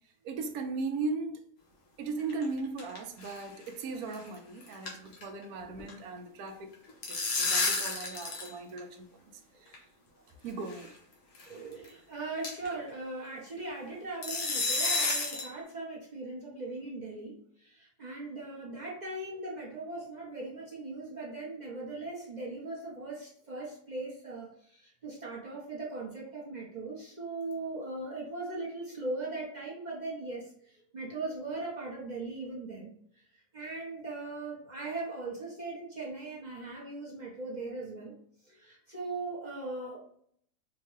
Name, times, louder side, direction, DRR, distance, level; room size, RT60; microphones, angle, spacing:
voice 1, 0.2-1.4 2.0-6.7 7.1-9.1 9.6-9.8 10.4-10.9, right 3 dB, 70° right, 1.1 m, -37 dB
sound 1, 2.2-3.0 3.2-3.4 3.7-3.8 4.1-4.4 4.6-5.9 6.7-8.5 8.8-8.9 9.7-9.8 10.7-10.9 11.3-11.4 11.8-11.9 12.4-12.7 14.2-15.5, left 3 dB, 80° left, 1.6 m, -31 dB
voice 2, 11.5-30.5 30.9-32.9 33.5-38.1 38.5-40.0, right 2 dB, 35° right, 0.7 m, -39 dB
4.7 x 2.2 x 3.1 m
omnidirectional pair, 1.7 m